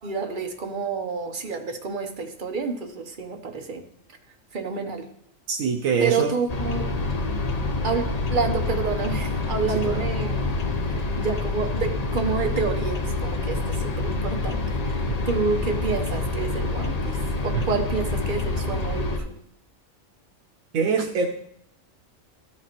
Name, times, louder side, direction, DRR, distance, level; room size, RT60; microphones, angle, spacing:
voice 1, 0.0-3.8 4.5-5.1 6.0-6.9 7.8-8.0 8.3-10.5 10.9-17.2 17.4-19.3, right 5 dB, 45° right, 5 dB, 0.9 m, -29 dB
voice 2, 5.5-6.3 9.9-10.0 15.1-15.2 17.5-17.6 20.7-21.3, right 6 dB, 90° right, 3 dB, 1.1 m, -24 dB
sound 1, 6.5-19.2, left 3 dB, 40° left, 0.6 m, -27 dB
13.5 x 4.9 x 3.0 m, 0.71 s
omnidirectional pair, 1.4 m